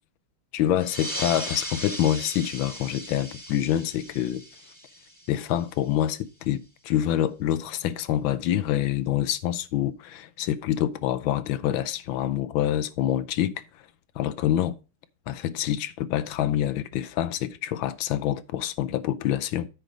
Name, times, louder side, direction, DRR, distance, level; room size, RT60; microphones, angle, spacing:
voice 1, 0.5-4.4 5.3-13.6 14.2-14.7 15.3-19.7, left 11 dB, 80° left, 1.4 m, -26 dB
sound 1, 0.8-5.8, equal, 10° right, 1.2 m, -37 dB
9.2 x 4.6 x 5.0 m
omnidirectional pair, 2.2 m